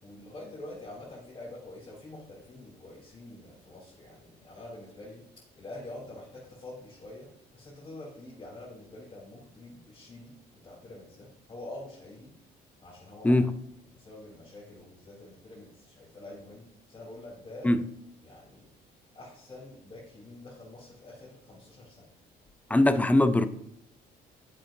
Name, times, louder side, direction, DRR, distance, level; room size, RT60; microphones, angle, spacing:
voice 1, 0.0-5.3 5.5-12.3 12.8-13.5 13.9-17.7 18.2-18.7 19.1-22.1, left 2 dB, 30° left, 3.6 m, -46 dB
voice 2, 22.7-23.5, left 1 dB, 10° left, 0.5 m, -21 dB
9.8 x 7.5 x 2.7 m
cardioid pair, 110°, 17 cm